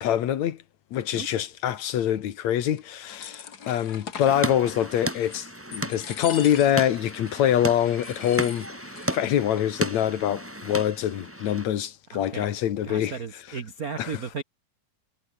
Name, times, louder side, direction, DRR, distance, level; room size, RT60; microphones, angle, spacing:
voice 1, 0.0-0.6 0.9-13.2 13.5-13.6 14.0-14.2, left 10 dB, 65° left, 2.5 m, -25 dB
sound 1, 2.8-4.4 4.9-5.5 5.7-6.9 7.3-7.4 7.8-9.1 9.4-9.5 9.7-10.3, left 7 dB, 40° left, 1.7 m, -41 dB
sound 2, 4.3-11.6, right 1 dB, 5° right, 2.9 m, -34 dB
voice 2, 12.1-12.5 12.8-14.4, right 5 dB, 65° right, 0.8 m, -35 dB
omnidirectional pair, 3.6 m